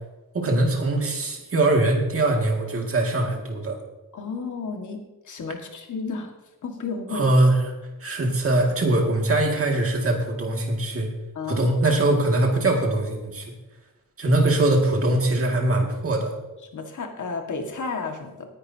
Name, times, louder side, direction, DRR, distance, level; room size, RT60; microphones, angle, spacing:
voice 1, 0.3-3.8 7.1-7.7 8.0-11.1 11.5-13.5 14.2-16.3, right 2 dB, 40° right, 1 dB, 2.3 m, -22 dB
voice 2, 4.1-6.3 6.6-7.3 11.4-11.8 16.7-18.5, left 4 dB, 55° left, 3 dB, 1.9 m, -32 dB
19.0 x 10.5 x 2.9 m, 1.1 s
wide cardioid pair, 160°, 36 cm